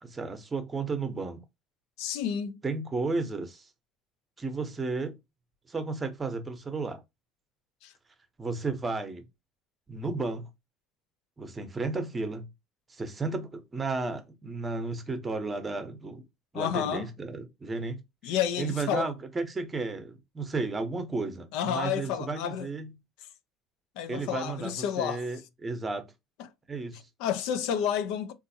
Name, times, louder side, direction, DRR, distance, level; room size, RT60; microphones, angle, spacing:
voice 1, 0.0-1.4 2.6-3.7 4.4-5.2 5.7-7.0 8.4-9.2 9.9-10.5 11.4-12.5 12.9-16.2 16.5-18.0 18.2-22.9 24.1-26.1 26.7-27.0, right 3 dB, 20° right, 0.7 m, -33 dB
voice 2, 2.0-2.6 7.8-7.9 16.5-17.1 18.2-19.1 21.5-22.7 24.0-25.2 27.2-28.3, left 9 dB, 80° left, 0.4 m, -30 dB
3.8 x 2.5 x 2.7 m
cardioid pair, 125°, 0 cm